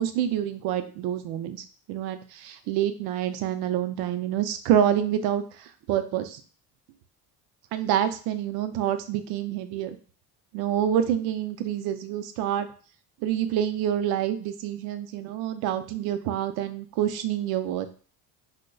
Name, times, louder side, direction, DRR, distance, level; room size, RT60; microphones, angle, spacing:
voice 1, 0.0-6.4 7.7-10.0 10.5-12.7 13.2-17.9, right 10 dB, 70° right, 9 dB, 0.5 m, -27 dB
5.0 x 2.2 x 2.2 m, 0.41 s
cardioid pair, 170°, 38 cm